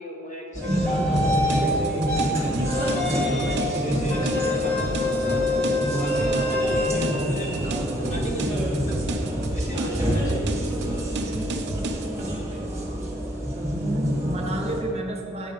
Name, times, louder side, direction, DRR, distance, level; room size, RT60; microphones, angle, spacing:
voice 1, 0.0-3.2 3.7-5.4 5.9-11.0, equal, 35° left, 0 dB, 1.1 m, -38 dB
sound 1, 0.5-14.8, equal, 15° right, 1.4 m, -27 dB
sound 2, 0.6-1.6 2.1-2.2 2.6-3.7 4.1-6.9, left 2 dB, 5° left, 1.1 m, -26 dB
sound 3, 1.2-12.1, right 2 dB, 55° right, 0.6 m, -33 dB
voice 2, 13.8-15.5, right 2 dB, 30° right, 0 dB, 0.9 m, -31 dB
8.6 x 5.5 x 5.2 m, 2.3 s
head